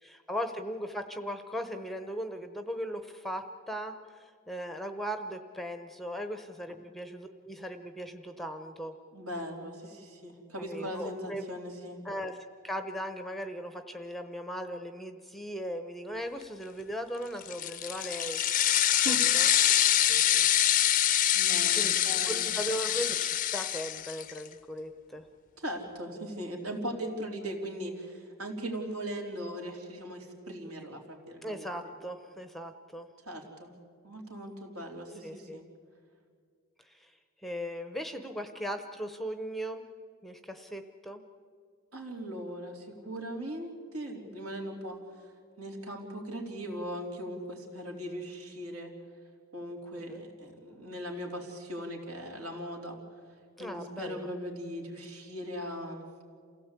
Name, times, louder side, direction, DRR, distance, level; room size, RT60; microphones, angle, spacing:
voice 1, 0.0-8.9 10.6-11.4 12.0-12.4 12.6-19.5 20.0-20.5 21.8-25.3 31.4-33.1 35.2-35.6 36.8-37.1 37.4-39.9 40.2-41.2 49.9-50.2 53.6-54.3, equal, ahead, 8 dB, 0.8 m, -38 dB
voice 2, 9.1-12.0 19.0-19.2 21.3-22.5 25.6-31.7 33.3-33.7 34.0-35.6 41.9-45.0 45.6-48.9 49.5-53.0 53.6-56.0, equal, 75° right, 1 dB, 3.7 m, -39 dB
sound 1, 17.4-24.4, left 11 dB, 35° left, 0.6 m, -25 dB
28.0 x 16.5 x 8.3 m, 2.1 s
head